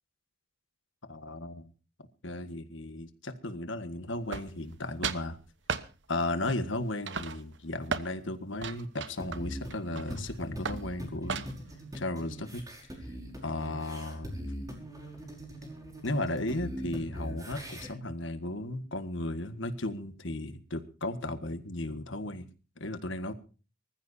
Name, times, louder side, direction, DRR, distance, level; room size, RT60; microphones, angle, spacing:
voice 1, 1.1-1.7 2.2-5.4 6.1-11.5 11.9-12.6 13.4-14.4 15.6-15.7 16.0-22.5 22.8-23.3, left 2 dB, 70° left, 9 dB, 1.6 m, -35 dB
sound 1, 4.3-4.8 5.0-5.3 5.7-5.9 6.5-6.8 7.1-8.1 8.6-10.2 10.6-10.9 11.3-11.7, right 5 dB, 65° right, 1.0 m, -35 dB
sound 2, 9.2-17.9, equal, 20° right, 5.3 m, -41 dB
25.0 x 15.0 x 2.7 m, 0.36 s
head